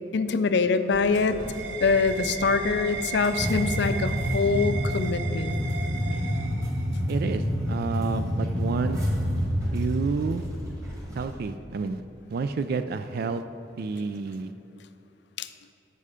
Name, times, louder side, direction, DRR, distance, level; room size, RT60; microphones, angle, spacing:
voice 1, 0.1-1.4 1.8-5.5 15.4-15.5, left 4 dB, 65° left, 10 dB, 0.5 m, -24 dB
sound 1, 0.7-7.2, right 6 dB, 85° right, 0.7 m, -36 dB
sound 2, 0.9-11.4, equal, 20° right, 2.0 m, -29 dB
voice 2, 7.1-9.0 9.7-10.4 11.2-12.0 12.3-13.4 13.8-14.5, right 4 dB, 55° right, 10 dB, 0.3 m, -29 dB
13.5 x 5.5 x 4.9 m, 2.9 s
head